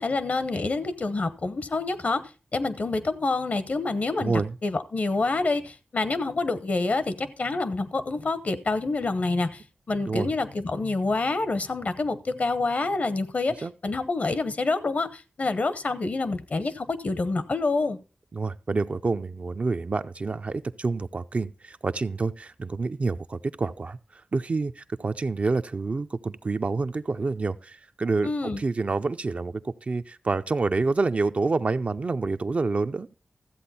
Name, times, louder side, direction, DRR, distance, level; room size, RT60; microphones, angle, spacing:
voice 1, 0.0-9.6 9.9-13.5 13.8-18.0 28.2-28.6, left 3 dB, 60° left, 0.9 m, -27 dB
voice 2, 4.2-4.6 10.1-10.3 13.6-13.7 18.3-33.1, right 3 dB, 50° right, 0.5 m, -28 dB
13.5 x 7.8 x 4.2 m
wide cardioid pair, 70°, 3 cm